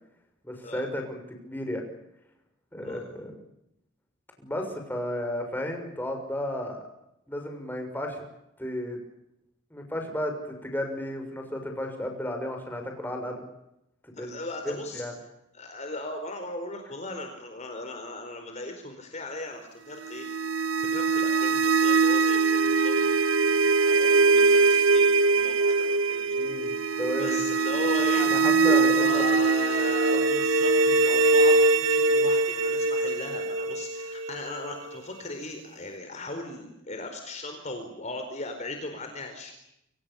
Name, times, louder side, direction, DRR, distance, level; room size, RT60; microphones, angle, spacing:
voice 1, 0.4-1.8 2.7-3.4 4.4-6.9 7.3-8.2 8.6-9.0 9.7-10.3 10.6-13.5 14.1-14.3 14.6-15.1 26.3-27.4 28.0-29.2, left 1 dB, 10° left, 3 dB, 6.6 m, -33 dB
voice 2, 14.1-15.0 15.5-20.3 20.8-23.2 23.4-28.3 28.6-39.5, left 2 dB, 35° left, 5 dB, 4.4 m, -37 dB
sound 1, 20.0-35.0, right 3 dB, 80° right, 2.0 m, -22 dB
29.0 x 25.5 x 7.1 m, 0.83 s
head